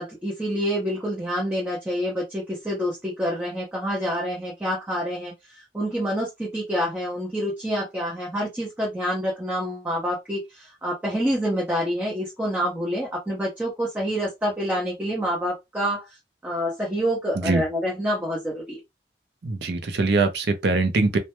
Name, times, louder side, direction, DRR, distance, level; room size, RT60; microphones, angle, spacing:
voice 1, 0.0-16.1 16.4-18.8, equal, 10° right, 0.5 m, -27 dB
voice 2, 19.4-21.2, right 3 dB, 70° right, 0.5 m, -22 dB
2.1 x 2.0 x 2.9 m
head